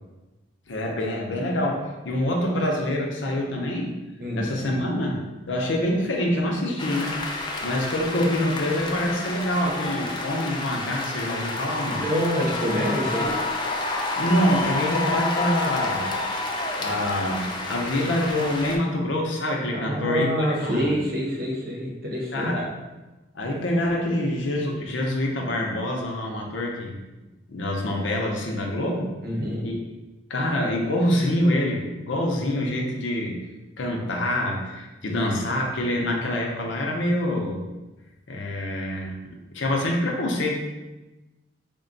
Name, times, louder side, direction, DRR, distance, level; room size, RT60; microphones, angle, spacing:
voice 1, 0.7-4.0 4.4-7.2 7.6-12.0 14.2-16.1 16.8-21.0 22.3-22.7 23.3-27.0 27.5-29.1 29.6-29.7 30.3-33.4 33.8-37.6 38.3-39.2 39.5-40.6, left 1 dB, 85° left, 0 dB, 0.7 m, -26 dB
sound 1, 6.8-18.8, left 2 dB, 25° left, 0.3 m, -29 dB
voice 2, 11.9-13.3 19.7-22.5 29.2-29.6, equal, 50° right, -2 dB, 0.8 m, -26 dB
3.6 x 2.2 x 3.8 m, 1.1 s
head